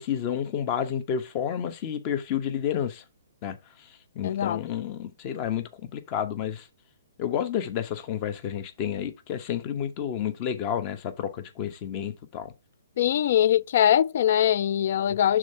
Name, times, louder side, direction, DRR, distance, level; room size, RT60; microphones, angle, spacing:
voice 1, 0.0-3.0 3.4-3.9 4.1-6.7 7.2-12.5 15.1-15.2, left 9 dB, 35° left, 1.0 m, -30 dB
voice 2, 4.2-4.6 13.0-15.4, left 10 dB, 55° left, 0.3 m, -22 dB
6.2 x 3.8 x 5.5 m
hypercardioid pair, 145°, 0 cm